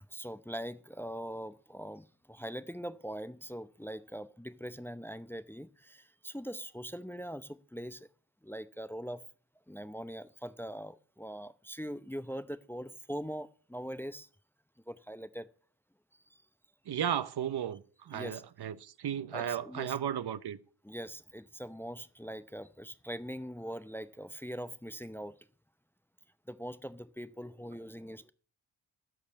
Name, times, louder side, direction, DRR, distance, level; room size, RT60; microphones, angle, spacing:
voice 1, 0.1-8.1 8.4-9.2 9.7-14.3 14.9-15.5 16.3-16.4 18.1-18.4 19.3-20.0 20.8-25.4 26.5-28.3, equal, 5° left, 0.7 m, -42 dB
voice 2, 16.9-20.6, right 9 dB, 55° right, 0.8 m, -35 dB
11.0 x 6.5 x 7.3 m
supercardioid pair, 50°, 46 cm